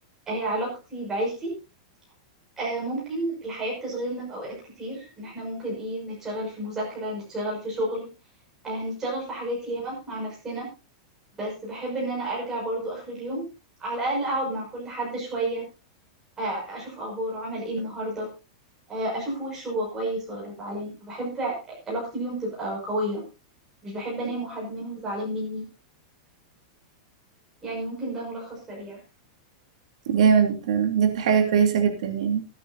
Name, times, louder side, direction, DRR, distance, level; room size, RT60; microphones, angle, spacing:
voice 1, 0.3-1.5 2.6-8.1 8.6-10.7 11.4-13.4 13.8-15.6 16.4-18.3 18.9-23.2 23.8-25.6 27.6-29.0, right 1 dB, 10° right, -4 dB, 6.1 m, -31 dB
voice 2, 30.1-32.4, right 7 dB, 70° right, 5 dB, 3.1 m, -21 dB
23.5 x 9.7 x 2.7 m, 0.30 s
supercardioid pair, 170°, 3 cm